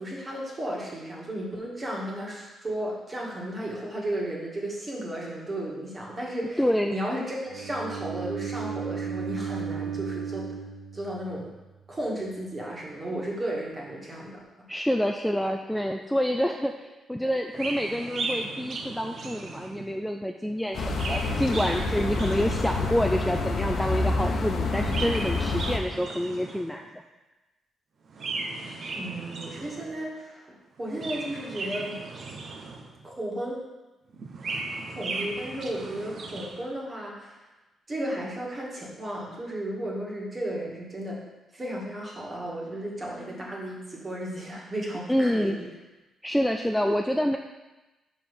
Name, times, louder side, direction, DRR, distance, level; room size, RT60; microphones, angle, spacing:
voice 1, 0.0-6.6 6.9-10.5 10.9-11.5 11.9-14.4 28.9-32.0 33.0-33.6 34.9-37.4 37.9-41.2 41.5-45.7, right 1 dB, 25° right, -3 dB, 1.9 m, -34 dB
voice 2, 6.6-7.0 14.7-27.0 45.1-45.6 46.2-47.4, equal, 5° left, 3 dB, 0.4 m, -27 dB
Bowed string instrument, 7.5-11.6, right 7 dB, 80° right, 0.5 m, -34 dB
Chirp tweet, 17.5-20.0 20.7-23.1 24.7-26.8 28.1-30.0 30.8-33.1 34.1-36.7, right 3 dB, 50° right, 0.8 m, -36 dB
sound 1, 20.7-25.8, left 3 dB, 60° left, 0.9 m, -28 dB
5.4 x 4.9 x 5.7 m, 1.1 s
cardioid pair, 105°, 0 cm